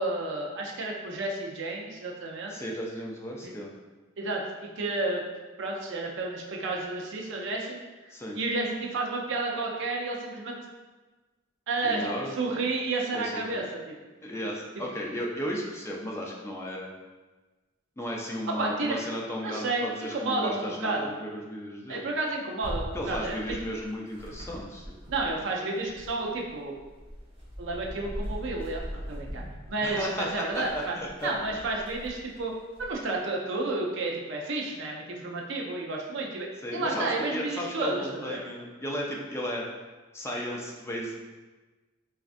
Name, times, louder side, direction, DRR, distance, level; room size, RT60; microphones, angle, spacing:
voice 1, 0.0-2.6 3.4-3.5 4.2-5.2 5.6-7.8 8.3-10.6 11.7-14.0 18.5-19.1 19.4-21.1 21.9-23.6 25.1-26.7 27.6-30.9 31.2-32.5 32.8-38.4, right 2 dB, 65° right, -1 dB, 0.5 m, -31 dB
voice 2, 2.5-3.7 8.1-8.4 11.8-12.3 13.1-13.6 14.2-16.9 18.0-22.0 22.9-24.8 29.8-31.3 36.6-39.6 40.1-41.2, equal, 15° left, -2 dB, 0.4 m, -34 dB
sound 1, 22.6-25.4 25.7-32.9, equal, 25° right, 1.0 m, -41 dB
4.1 x 2.4 x 2.5 m, 1.2 s
head